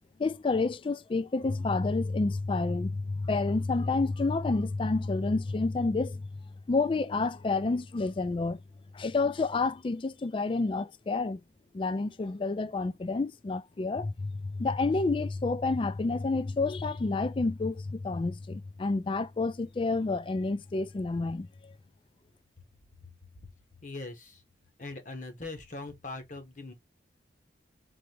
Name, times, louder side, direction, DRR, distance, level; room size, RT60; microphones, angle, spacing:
voice 1, 0.2-6.3 6.7-8.6 8.9-11.4 11.7-21.7, left 3 dB, 30° left, 0.3 m, -29 dB
voice 2, 23.8-24.4 24.8-26.7, left 2 dB, 45° left, 1.1 m, -41 dB
3.9 x 3.3 x 3.2 m
head